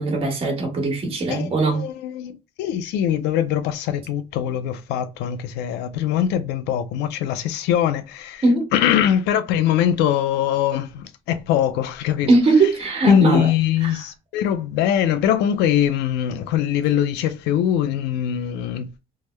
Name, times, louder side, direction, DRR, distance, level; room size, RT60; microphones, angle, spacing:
voice 1, 0.0-1.8 8.4-8.7 12.3-13.5 13.8-14.0, right 2 dB, 35° right, 1.4 m, -19 dB
voice 2, 1.3-8.4 8.7-12.3 13.0-18.9, left 10 dB, 90° left, 0.5 m, -22 dB
3.5 x 2.1 x 3.1 m
cardioid pair, 110°, 17 cm